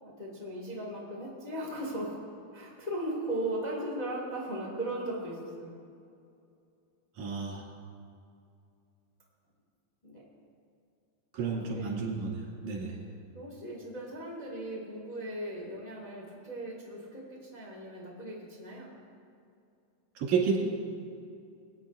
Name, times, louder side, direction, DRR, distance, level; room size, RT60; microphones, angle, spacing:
voice 1, 0.0-2.1 2.5-5.7 10.0-10.2 11.4-12.0 13.3-19.0, right 1 dB, 20° left, -5 dB, 1.1 m, -37 dB
voice 2, 7.2-7.7 11.3-13.0 20.2-20.6, right 5 dB, 75° right, -4 dB, 3.3 m, -31 dB
22.0 x 9.0 x 2.4 m, 2.4 s
omnidirectional pair, 3.5 m